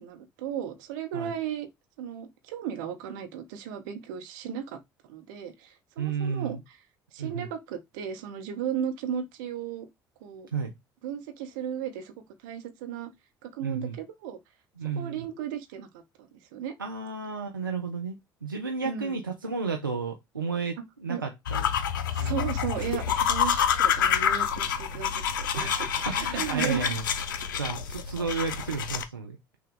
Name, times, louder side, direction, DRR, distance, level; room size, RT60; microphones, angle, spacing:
voice 1, 0.0-1.7 2.0-4.8 5.1-6.8 7.1-9.9 10.2-10.5 11.0-12.1 12.4-13.1 13.4-14.4 15.0-15.9 16.2-16.7 18.8-19.2 21.1-21.2 22.1-26.9, right 9 dB, 65° right, 0.9 m, -35 dB
voice 2, 6.0-6.6 7.2-7.5 10.5-10.7 13.6-14.0 14.8-15.3 16.8-21.7 22.2-22.3 24.6-24.8 25.5-27.0 27.6-29.4, right 5 dB, 90° right, 0.4 m, -33 dB
sound 1, 21.5-29.0, left 8 dB, 75° left, 0.4 m, -27 dB
6.0 x 2.2 x 3.6 m
figure-of-eight pair, 55°, 11 cm